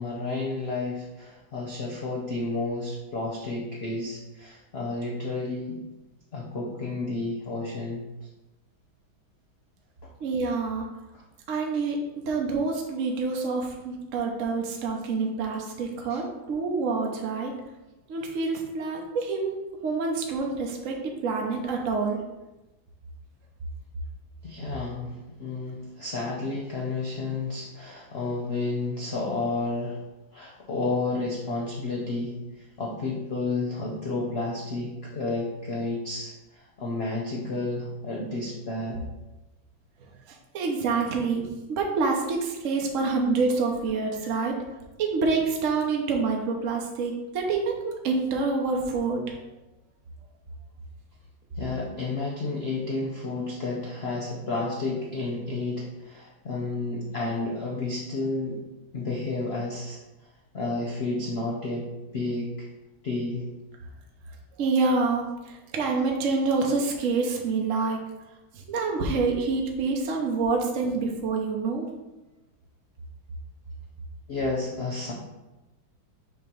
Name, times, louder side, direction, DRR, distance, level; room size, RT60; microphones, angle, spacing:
voice 1, 0.0-5.8 6.3-8.3 11.1-11.2 16.1-16.2 24.4-30.0 30.3-39.0 51.6-58.6 58.9-60.0 60.5-61.9 62.1-62.7 63.0-63.5 74.3-75.1, left 3 dB, 90° left, -2 dB, 0.5 m, -31 dB
voice 2, 10.2-10.9 11.5-12.0 12.3-17.5 18.1-19.6 19.8-22.2 40.3-41.4 41.7-44.6 45.0-49.2 64.6-68.0 68.5-71.9, right 4 dB, 60° right, 1 dB, 0.9 m, -27 dB
6.8 x 2.9 x 5.1 m, 1.0 s
omnidirectional pair, 2.2 m